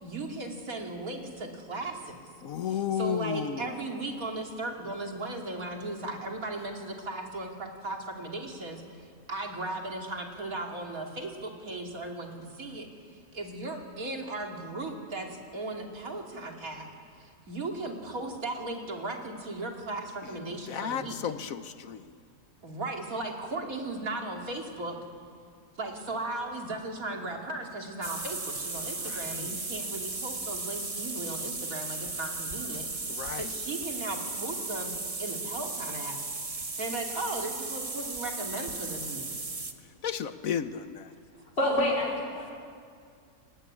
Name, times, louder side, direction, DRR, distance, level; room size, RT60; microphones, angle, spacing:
voice 1, 0.0-2.2 2.6-16.9 17.2-21.2 22.6-25.0 25.8-33.1 33.4-34.9 35.2-36.2 36.8-39.2, right 2 dB, 75° right, 1 dB, 3.2 m, -37 dB
voice 2, 2.4-3.7 20.4-22.0 29.0-29.6 33.1-33.5 40.0-41.1, left 8 dB, 75° left, 11 dB, 1.3 m, -33 dB
sound 1, 28.0-39.7, right 3 dB, 25° right, 1.3 m, -36 dB
voice 3, 41.6-42.5, left 1 dB, 45° left, -4 dB, 4.7 m, -27 dB
25.5 x 18.5 x 9.8 m, 2.2 s
omnidirectional pair, 1.5 m